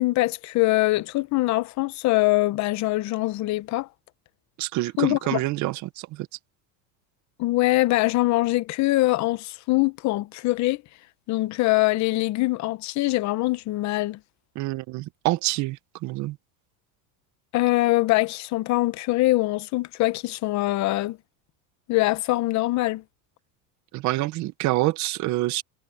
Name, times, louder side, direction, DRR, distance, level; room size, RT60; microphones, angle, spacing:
voice 1, 0.0-3.9 5.0-5.4 7.4-10.8 11.3-14.2 17.5-21.2 21.9-23.0, left 19 dB, 40° left, 0.8 m, -23 dB
voice 2, 4.6-6.3 14.6-16.4 23.9-25.6, right 18 dB, 45° right, 0.7 m, -27 dB
cardioid pair, 150°, 42 cm